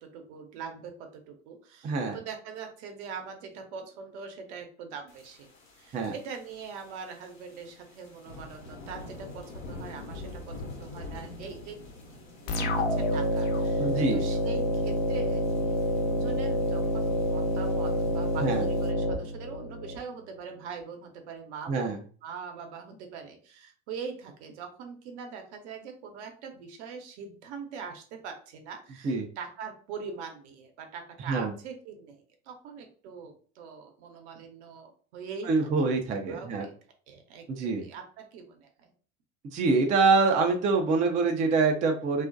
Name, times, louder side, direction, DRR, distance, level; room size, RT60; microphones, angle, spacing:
voice 1, 0.0-5.5 5.8-11.8 12.4-15.4 15.9-35.5 35.8-35.9 36.3-36.7 37.1-38.9, right 6 dB, 60° right, 4 dB, 0.8 m, -42 dB
voice 2, 1.8-2.2 5.9-6.1 13.8-14.2 18.4-18.7 21.7-22.0 29.0-29.3 31.3-31.5 35.4-36.6 37.5-37.8 39.5-42.3, right 4 dB, 20° right, 3 dB, 0.3 m, -25 dB
sound 1, 5.1-18.9, left 2 dB, 90° left, 0.9 m, -47 dB
sound 2, 12.5-20.0, left 1 dB, 50° left, 0.7 m, -28 dB
2.4 x 2.1 x 2.4 m, 0.42 s
hypercardioid pair, 80°, 39 cm